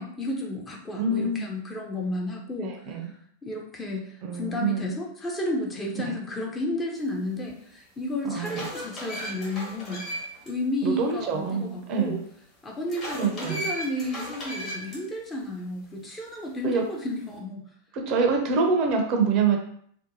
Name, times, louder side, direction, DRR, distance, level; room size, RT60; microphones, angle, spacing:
voice 1, 0.0-3.1 3.4-10.1 10.5-12.2 12.6-17.6, left 1 dB, 15° left, 0 dB, 0.5 m, -32 dB
voice 2, 1.0-1.4 2.6-3.1 4.2-5.0 5.9-6.1 8.2-8.7 10.8-12.2 13.2-13.7 16.6-16.8 17.9-19.6, right 4 dB, 40° right, 2 dB, 0.5 m, -26 dB
sound 1, 7.5-7.6 8.1-10.5 10.9-11.0 12.9-15.0, equal, 35° left, 1.1 m, -36 dB
2.7 x 2.2 x 2.6 m, 0.63 s
figure-of-eight pair, 90°, 0 cm